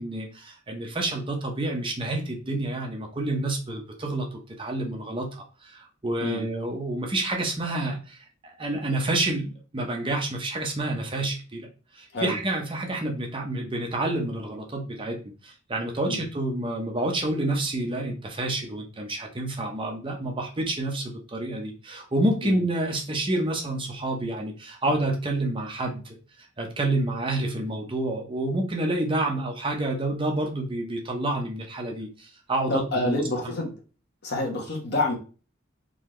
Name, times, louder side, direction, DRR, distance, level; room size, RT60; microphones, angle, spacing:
voice 1, 0.0-8.2 8.6-11.7 11.9-26.2 26.6-33.2 34.3-34.4, right 2 dB, 25° right, 1 dB, 0.8 m, -29 dB
voice 2, 32.7-33.7 34.2-35.2, left 2 dB, 55° left, 0 dB, 1.3 m, -28 dB
3.9 x 2.8 x 3.1 m, 0.34 s
head